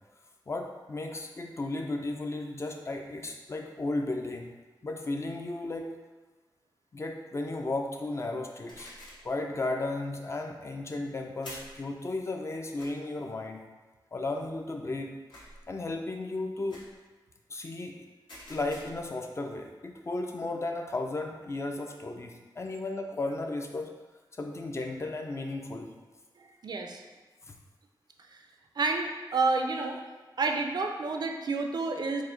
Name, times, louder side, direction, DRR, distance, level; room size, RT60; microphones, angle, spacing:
voice 1, 0.5-4.5 4.8-5.9 6.9-8.9 9.2-13.6 14.1-15.1 15.7-16.8 17.5-18.0 18.5-23.9 24.4-25.9, left 2 dB, 35° left, 3 dB, 0.4 m, -34 dB
sound 1, 8.7-9.3 11.4-11.8 12.8-12.9 15.3-15.7 16.7-17.0 18.3-19.1, left 1 dB, 80° left, 1.4 m, -47 dB
voice 2, 26.4-27.0 28.3-28.4 28.8-30.0 30.4-32.2, right 3 dB, 60° right, 3 dB, 0.4 m, -30 dB
4.7 x 2.1 x 3.7 m, 1.2 s
wide cardioid pair, 110°, 8 cm